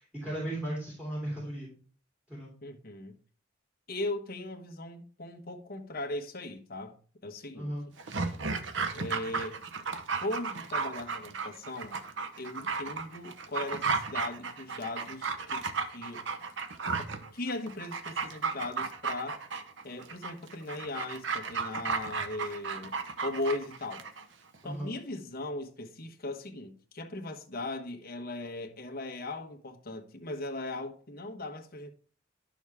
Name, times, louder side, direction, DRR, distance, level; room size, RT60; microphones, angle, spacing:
voice 1, 0.0-1.7 2.3-2.5 7.5-7.9 24.6-24.9, right 1 dB, 5° right, 3.0 m, -36 dB
voice 2, 2.6-3.1 3.9-7.0 7.2-7.7 8.9-9.6 10.2-12.0 12.4-15.6 15.9-16.2 17.0-19.4 19.8-22.9 23.2-24.1 24.6-31.9, left 2 dB, 50° left, 1.1 m, -38 dB
Dog, 8.0-24.2 24.5-24.6, right 4 dB, 65° right, 0.9 m, -34 dB
11.0 x 6.3 x 3.5 m
head